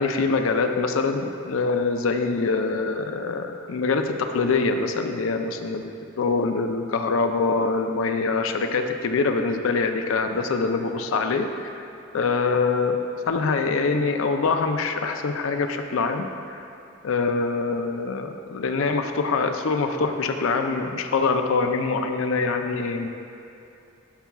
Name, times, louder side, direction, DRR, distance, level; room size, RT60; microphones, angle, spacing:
voice 1, 0.0-11.9 12.1-13.0 13.3-16.7 17.0-23.1, left 4 dB, 70° left, 6 dB, 0.5 m, -24 dB
11.5 x 5.7 x 2.3 m, 2.7 s
head